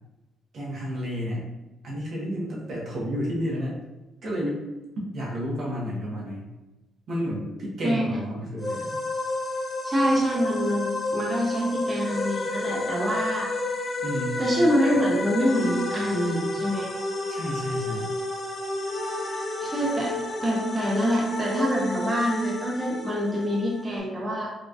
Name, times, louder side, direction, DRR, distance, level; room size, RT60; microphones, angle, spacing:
voice 1, 0.5-1.4 1.8-3.7 4.2-4.6 5.1-6.5 7.1-9.0 14.0-14.4 17.3-18.1, equal, 60° right, -4 dB, 1.4 m, -31 dB
sound 1, 8.6-24.0, left 2 dB, 25° left, 0.9 m, -31 dB
voice 2, 9.8-13.5 14.4-16.9 19.6-20.2 20.4-24.5, equal, 20° right, -4 dB, 0.8 m, -25 dB
3.9 x 3.2 x 2.5 m, 1.1 s
cardioid pair, 85°, 0 cm